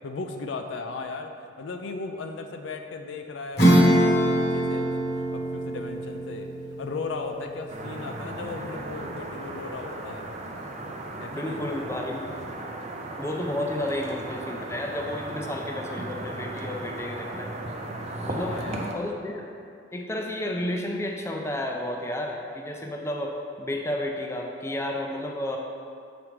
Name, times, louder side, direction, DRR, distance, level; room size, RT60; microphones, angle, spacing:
voice 1, 0.0-6.5 6.8-10.3 10.9-11.0 11.2-11.6 18.3-19.0, left 3 dB, 75° left, 5 dB, 0.4 m, -37 dB
Acoustic guitar / Strum, 3.6-9.6, equal, 55° left, 1.2 m, -24 dB
sound 1, 7.7-18.9, right 2 dB, 35° right, 0.5 m, -36 dB
voice 2, 11.3-12.4 13.2-17.5 18.2-18.6 18.9-19.5 19.9-25.6, left 1 dB, 15° left, 1 dB, 0.4 m, -31 dB
7.1 x 5.0 x 3.2 m, 2.4 s
head